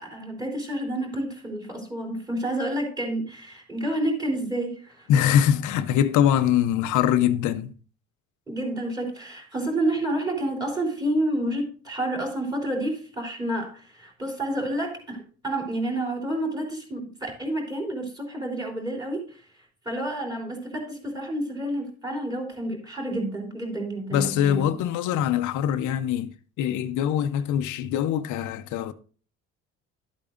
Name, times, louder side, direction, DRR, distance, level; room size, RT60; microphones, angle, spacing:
voice 1, 0.0-5.1 8.5-19.4 19.8-24.6, right 1 dB, 15° right, 3.3 m, -29 dB
voice 2, 5.1-7.7 24.1-26.3 26.6-28.9, left 10 dB, 85° left, 0.7 m, -23 dB
12.0 x 8.5 x 2.5 m
cardioid pair, 130°, 30 cm